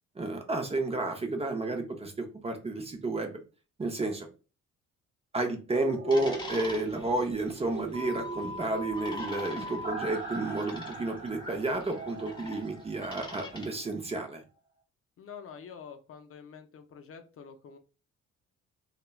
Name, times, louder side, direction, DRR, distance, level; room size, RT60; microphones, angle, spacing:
voice 1, 0.2-3.4 3.8-4.3 5.3-14.4, right 2 dB, 20° right, 4 dB, 0.6 m, -31 dB
sound 1, 5.7-13.6 13.9-14.0, right 3 dB, 35° right, 1.1 m, -42 dB
sound 2, 6.1-13.7, left 2 dB, 15° left, 0.9 m, -45 dB
sound 3, 7.9-9.9, left 2 dB, 60° right, 0.7 m, -40 dB
voice 2, 15.2-17.8, left 6 dB, 50° left, 6 dB, 0.5 m, -47 dB
3.0 x 2.2 x 2.2 m, 0.33 s
cardioid pair, 90°, 30 cm